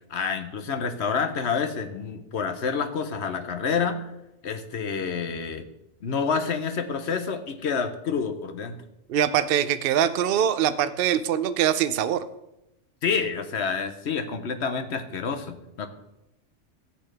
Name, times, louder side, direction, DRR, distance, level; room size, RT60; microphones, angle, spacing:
voice 1, 0.1-4.0 4.4-5.6 6.0-8.8 13.0-15.9, left 5 dB, 65° left, 8 dB, 1.1 m, -28 dB
voice 2, 9.1-12.2, right 9 dB, 60° right, 12 dB, 0.7 m, -23 dB
14.0 x 8.7 x 3.3 m, 0.88 s
omnidirectional pair, 1.2 m